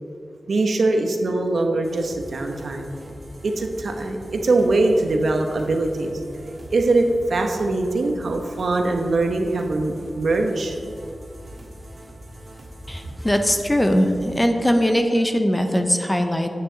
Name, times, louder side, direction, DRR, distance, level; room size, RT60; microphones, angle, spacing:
voice 1, 0.5-2.9 3.4-6.2 6.7-10.8, right 2 dB, 65° right, 3 dB, 0.9 m, -22 dB
sound 1, 1.8-14.4, equal, 35° right, 1.6 m, -42 dB
voice 2, 12.9-16.5, equal, 10° left, 5 dB, 0.6 m, -20 dB
9.1 x 8.9 x 3.9 m, 2.3 s
wide cardioid pair, 125°, 0 cm